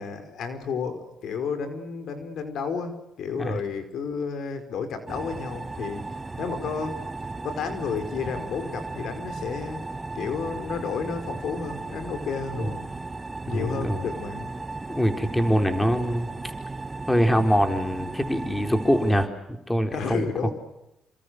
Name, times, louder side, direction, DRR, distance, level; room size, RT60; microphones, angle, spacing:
voice 1, 0.0-6.0 6.4-7.1 7.4-12.9 13.5-14.6 19.9-20.5, left 5 dB, 70° left, 9 dB, 5.2 m, -32 dB
sound 1, 5.1-19.3, right 3 dB, 20° right, 1.2 m, -36 dB
voice 2, 13.5-14.0 14.9-16.3 17.1-20.3, equal, 10° left, 6 dB, 4.2 m, -24 dB
29.0 x 26.5 x 6.6 m, 0.87 s
cardioid pair, 90°, 0 cm